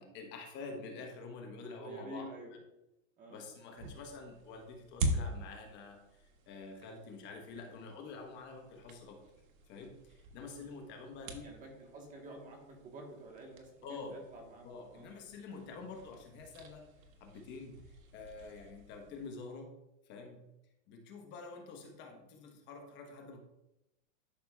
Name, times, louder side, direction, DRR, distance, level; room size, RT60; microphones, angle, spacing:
voice 1, 0.0-2.3 3.3-9.2 9.6-11.5 13.8-14.2 14.6-16.9 17.2-19.7 20.0-20.4 20.9-23.4, left 4 dB, 30° left, 2 dB, 1.1 m, -47 dB
voice 2, 1.7-2.5 3.2-3.4 11.4-14.6 14.9-15.1, right 2 dB, 20° right, 1 dB, 1.4 m, -49 dB
sound 1, 3.7-19.3, right 1 dB, 85° right, 1.5 m, -44 dB
11.5 x 5.8 x 2.4 m, 0.90 s
supercardioid pair, 150°, 40 cm